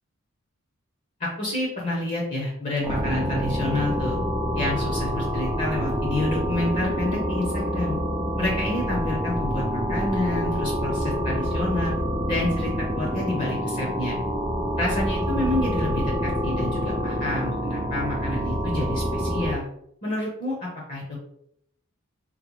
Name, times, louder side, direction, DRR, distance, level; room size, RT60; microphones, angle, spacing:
voice 1, 1.2-4.2 4.5-8.0 8.4-11.9 12.3-14.2 14.8-19.6 20.0-21.2, left 1 dB, 35° left, -3 dB, 0.7 m, -29 dB
sound 1, 2.8-19.5, equal, 15° right, 0.5 m, -27 dB
3.8 x 2.0 x 3.0 m, 0.71 s
head